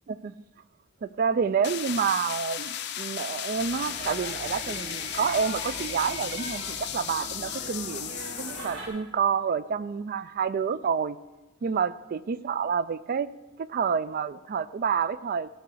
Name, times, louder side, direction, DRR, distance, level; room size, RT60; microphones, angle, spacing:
voice 1, 1.0-11.2 11.6-13.3 13.6-15.5, right 6 dB, 45° right, 16 dB, 0.3 m, -28 dB
sound 1, 1.6-8.8, left 11 dB, 55° left, 0.6 m, -35 dB
sound 2, 3.6-8.9, right 2 dB, 65° right, 2.6 m, -40 dB
13.5 x 4.7 x 6.6 m, 1.1 s
head